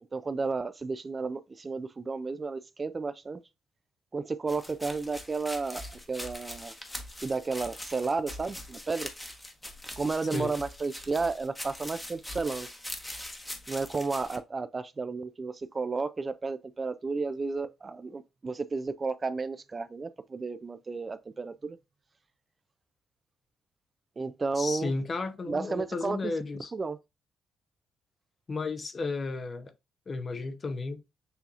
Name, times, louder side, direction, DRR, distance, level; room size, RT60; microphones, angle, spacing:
voice 1, 0.1-3.4 4.1-5.8 6.1-6.7 7.2-9.1 10.0-12.7 13.7-21.8 24.2-24.9 25.5-26.2 26.7-27.0, right 4 dB, 30° right, 0.4 m, -32 dB
sound 1, 4.5-14.4, left 1 dB, 15° left, 0.9 m, -42 dB
voice 2, 24.6-26.7 28.5-29.7 30.1-31.0, left 3 dB, 40° left, 0.6 m, -33 dB
6.8 x 2.8 x 2.4 m
cardioid pair, 90°, 0 cm